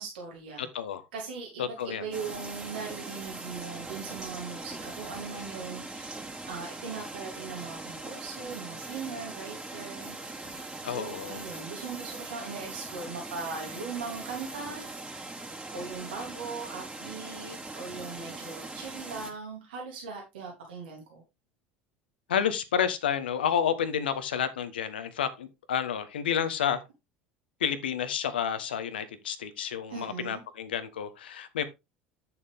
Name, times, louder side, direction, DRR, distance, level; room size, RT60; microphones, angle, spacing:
voice 1, 0.0-0.7 1.1-6.2 6.5-10.2 10.9-15.3 15.7-21.2 29.9-30.4, right 5 dB, 70° right, 3.2 m, -39 dB
voice 2, 0.6-1.0 1.6-2.1 10.8-11.4 22.3-26.8 27.6-31.6, left 8 dB, 75° left, 1.3 m, -30 dB
sound 1, 2.1-19.3, right 2 dB, 15° right, 3.8 m, -41 dB
10.5 x 7.2 x 3.6 m
figure-of-eight pair, 70°, 5 cm